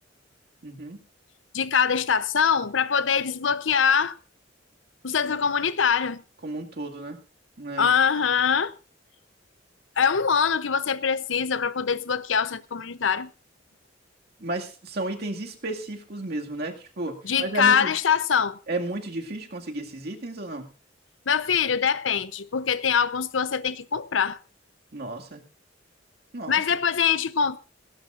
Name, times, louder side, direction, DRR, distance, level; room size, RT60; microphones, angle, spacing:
voice 1, 0.6-1.0 6.4-7.2 7.6-7.9 14.4-17.9 18.7-20.7 24.9-25.4 26.3-26.6, right 2 dB, 55° right, 2.1 m, -33 dB
voice 2, 1.5-4.2 5.0-6.2 7.8-8.7 10.0-13.3 17.2-18.6 21.3-24.4 26.5-27.6, left 6 dB, 90° left, 0.7 m, -23 dB
17.5 x 17.5 x 2.5 m
head